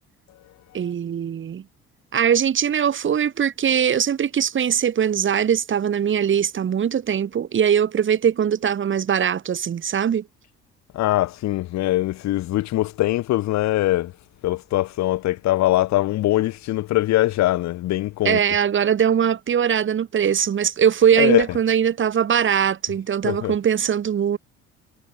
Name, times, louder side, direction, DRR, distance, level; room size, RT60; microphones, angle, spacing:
voice 1, 0.7-1.6 2.1-10.2 18.2-24.4, right 8 dB, 40° right, 1.5 m, -21 dB
voice 2, 10.9-14.1 14.4-18.4 21.2-21.6 23.2-23.5, left 15 dB, 70° left, 1.2 m, -22 dB
supercardioid pair, 85°, 29 cm